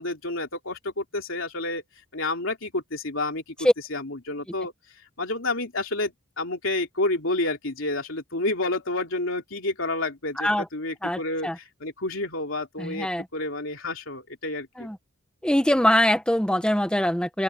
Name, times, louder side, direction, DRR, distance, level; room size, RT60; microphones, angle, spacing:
voice 1, 0.0-1.8 2.1-3.4 3.9-4.7 5.2-14.9, left 2 dB, 65° left, 3.6 m, -29 dB
voice 2, 11.0-11.6 12.8-13.2 14.8-15.0 15.4-17.4, equal, 5° left, 1.4 m, -23 dB
open air
head